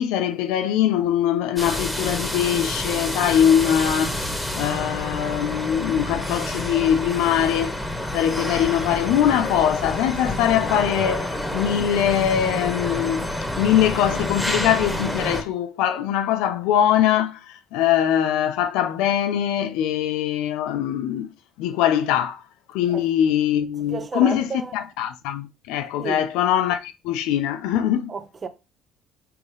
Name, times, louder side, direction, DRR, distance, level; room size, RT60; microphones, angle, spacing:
voice 1, 0.0-4.2 4.5-7.8 8.1-13.3 13.6-21.3 21.6-22.4 22.7-28.1, left 10 dB, 80° left, 0.7 m, -22 dB
sound 1, 1.6-15.4, left 1 dB, 10° left, 1.9 m, -28 dB
voice 2, 23.9-24.7 26.0-26.2 28.1-28.5, right 4 dB, 35° right, 1.1 m, -31 dB
5.7 x 3.9 x 5.4 m
supercardioid pair, 75°, 0 cm